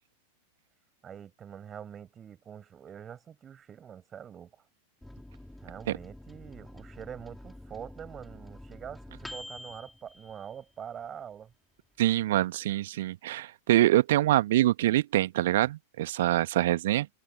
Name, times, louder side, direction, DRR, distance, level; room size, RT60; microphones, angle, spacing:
voice 1, 1.0-4.5 5.6-11.5, right 8 dB, 25° right, 6.0 m, -44 dB
Microwave oven, 5.0-11.1 11.5-11.6 11.8-12.5, left 1 dB, 5° left, 4.9 m, -47 dB
voice 2, 12.0-17.1, right 14 dB, 55° right, 1.8 m, -25 dB
figure-of-eight pair, 90°, 0 cm